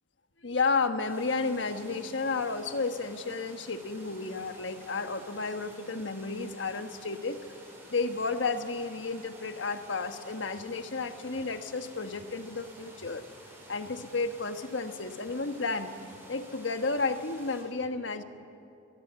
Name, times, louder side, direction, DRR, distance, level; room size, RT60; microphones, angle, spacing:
voice 1, 0.4-7.4 7.9-13.2 13.7-16.0 16.3-18.2, left 4 dB, 70° left, 8 dB, 1.4 m, -32 dB
sound 1, 1.1-17.6, right 1 dB, 10° right, 5.2 m, -52 dB
24.0 x 22.5 x 8.3 m, 2.7 s
head